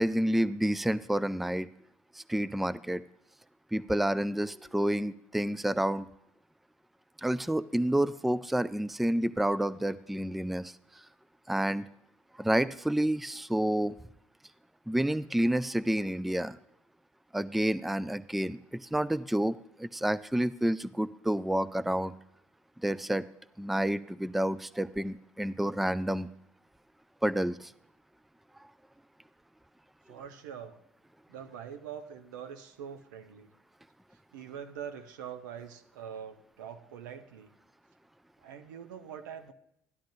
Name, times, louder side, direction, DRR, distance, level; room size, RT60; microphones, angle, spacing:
voice 1, 0.0-1.7 2.2-3.0 3.7-6.1 7.2-10.7 11.5-11.8 12.4-13.9 14.9-16.6 17.3-22.1 22.8-23.2 23.6-26.3 27.2-27.7, right 1 dB, ahead, 16 dB, 0.3 m, -29 dB
voice 2, 30.1-30.8 31.3-33.5 34.3-37.5 38.4-39.5, right 8 dB, 85° right, 8 dB, 0.7 m, -44 dB
13.5 x 10.0 x 2.6 m, 0.76 s
hypercardioid pair, 60°, 10 cm